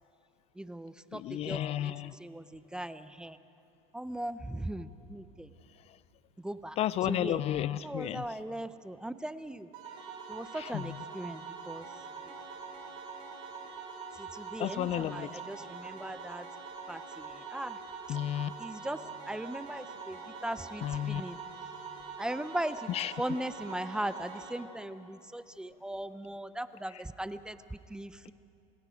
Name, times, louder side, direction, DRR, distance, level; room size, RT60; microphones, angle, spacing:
voice 1, 0.6-3.4 3.9-5.5 6.4-7.4 7.8-9.7 10.3-11.9 12.3-12.4 14.1-16.5 16.9-17.8 18.1-18.2 18.6-21.4 22.2-22.9 23.2-28.3, right 1 dB, 5° right, 13 dB, 0.6 m, -39 dB
voice 2, 1.1-2.2 6.8-8.2 10.6-10.8 14.6-15.3 18.1-18.5 20.8-21.2 22.9-23.1, left 12 dB, 40° left, 17 dB, 0.4 m, -32 dB
sound 1, 9.7-24.5, right 5 dB, 75° right, 5.9 m, -44 dB
27.5 x 19.5 x 5.1 m, 2.7 s
supercardioid pair, 115°, 17 cm